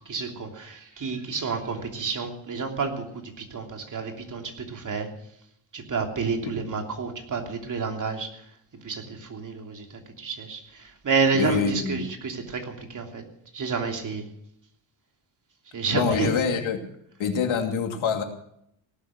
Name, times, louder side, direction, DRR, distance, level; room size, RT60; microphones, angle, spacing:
voice 1, 0.1-3.0 3.4-5.1 5.7-8.3 8.8-9.8 10.2-10.6 11.0-13.2 13.5-14.2 15.7-16.6, right 5 dB, 40° right, 3 dB, 3.1 m, -29 dB
voice 2, 11.3-12.1 15.9-16.8 17.2-18.2, left 6 dB, 70° left, 4 dB, 2.8 m, -25 dB
18.0 x 12.0 x 6.3 m, 0.72 s
cardioid pair, 135°, 49 cm